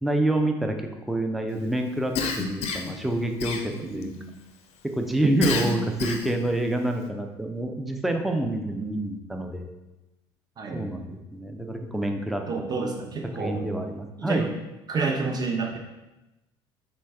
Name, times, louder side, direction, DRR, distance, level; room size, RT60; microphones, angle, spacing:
voice 1, 0.0-4.1 4.9-9.7 10.7-12.4 13.4-14.5, right 1 dB, ahead, 4 dB, 0.4 m, -27 dB
Cough, 2.1-3.0 3.4-4.0 5.4-6.4, left 5 dB, 50° left, 0.5 m, -29 dB
voice 2, 3.8-4.2 8.8-9.1 10.6-10.9 12.5-13.7 14.2-14.5 14.9-15.8, right 4 dB, 30° right, 2 dB, 0.8 m, -29 dB
3.3 x 3.1 x 3.4 m, 1.0 s
hypercardioid pair, 65°, 13 cm